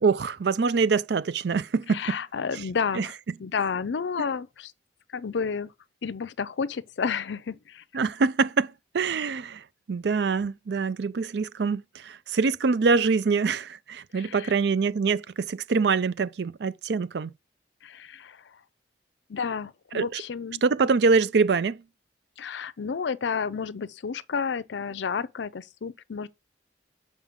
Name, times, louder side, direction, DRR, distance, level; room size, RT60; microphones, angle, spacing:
voice 1, 0.0-2.0 2.9-3.1 7.9-17.3 19.9-20.2 20.6-21.8, right 4 dB, 65° right, 0.4 m, -24 dB
voice 2, 1.9-3.1 3.4-4.7 5.1-5.7 6.0-7.8 14.1-14.5 17.8-18.4 19.3-20.6 22.4-26.3, left 6 dB, 75° left, 0.5 m, -31 dB
7.2 x 5.0 x 3.6 m
head